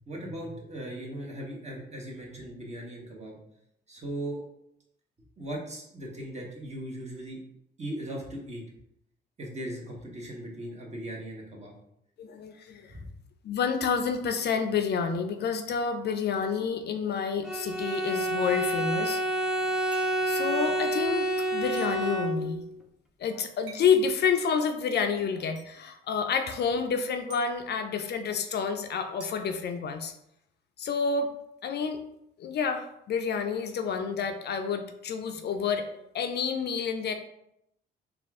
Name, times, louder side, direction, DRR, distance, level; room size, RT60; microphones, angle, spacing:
voice 1, 0.1-3.4 3.9-4.4 5.4-7.4 7.8-8.6 9.4-11.7 12.9-13.1, right 1 dB, 35° right, -1 dB, 1.3 m, -38 dB
voice 2, 12.2-12.9 13.4-19.2 20.3-22.6 23.2-30.1 30.8-31.3 31.6-32.0 32.4-35.8 36.1-37.1, left 6 dB, 55° left, 7 dB, 0.4 m, -29 dB
Bowed string instrument, 17.4-22.7, right 1 dB, 5° right, 0.5 m, -29 dB
sound 1, 19.9-20.3 21.8-21.9 23.7-24.0 25.5-25.7 27.3-27.4 29.2-30.3, right 4 dB, 65° right, 1.2 m, -48 dB
4.1 x 2.4 x 3.6 m, 0.77 s
cardioid pair, 90°, 20 cm